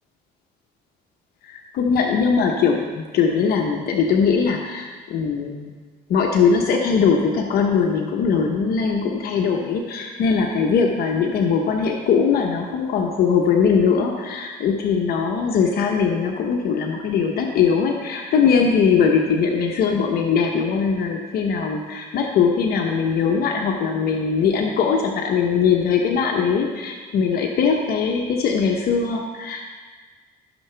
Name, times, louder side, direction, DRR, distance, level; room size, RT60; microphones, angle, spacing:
voice 1, 1.4-5.7 6.1-29.7, left 6 dB, 65° left, 1 dB, 0.9 m, -20 dB
14.5 x 6.6 x 3.4 m, 1.4 s
cardioid pair, 110°, 17 cm